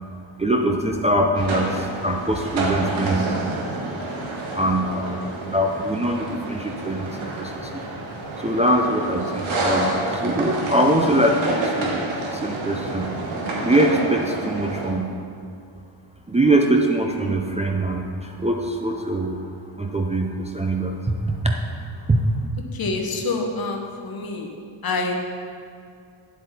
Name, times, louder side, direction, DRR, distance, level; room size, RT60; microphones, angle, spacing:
voice 1, 0.4-3.8 4.5-7.8 8.4-12.0 12.3-13.1 13.6-15.1 16.3-19.5 19.8-21.6 22.1-22.2, right 1 dB, 15° right, 0 dB, 0.3 m, -23 dB
sound 1, 1.3-14.9, right 2 dB, 75° right, 1.6 m, -29 dB
voice 2, 22.7-24.5 24.8-25.1, left 3 dB, 45° left, 2 dB, 1.1 m, -26 dB
9.4 x 7.8 x 4.1 m, 2.3 s
wide cardioid pair, 175°, 48 cm